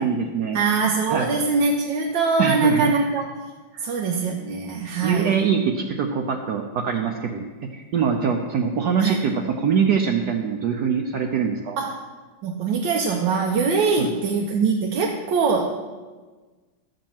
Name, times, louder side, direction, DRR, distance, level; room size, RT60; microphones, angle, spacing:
voice 1, 0.0-0.6 1.1-1.3 2.4-2.9 3.7-3.9 5.0-7.4 7.7-11.8 14.0-14.1, right 6 dB, 65° right, 3 dB, 1.2 m, -23 dB
voice 2, 0.5-3.4 3.8-5.4 9.0-9.2 11.8-12.0 12.4-15.7, right 4 dB, 85° right, 1 dB, 1.6 m, -23 dB
12.0 x 5.3 x 7.2 m, 1.3 s
omnidirectional pair, 2.0 m